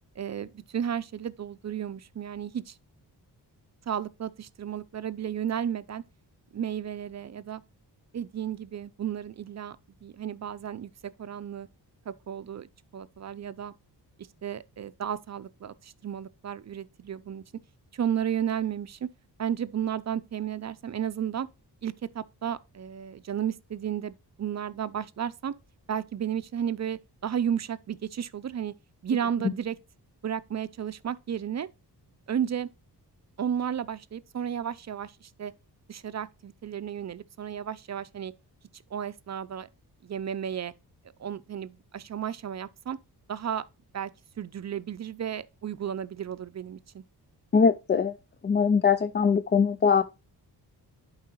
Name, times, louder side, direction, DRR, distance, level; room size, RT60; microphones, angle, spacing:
voice 1, 0.2-2.8 3.9-6.0 6.5-7.6 8.1-9.8 10.0-11.7 12.1-13.7 14.4-17.4 17.9-19.1 19.4-21.5 21.8-25.5 25.9-28.7 29.0-29.8 30.2-31.7 32.3-32.7 33.4-35.5 35.9-38.3 38.9-39.7 40.0-40.7 41.2-43.0 43.3-43.6 43.9-44.1 44.4-47.0, right 9 dB, 45° right, 0.5 m, -33 dB
voice 2, 47.5-48.2 48.4-50.0, left 6 dB, 30° left, 0.4 m, -22 dB
11.0 x 4.8 x 3.0 m
wide cardioid pair, 105°, 40 cm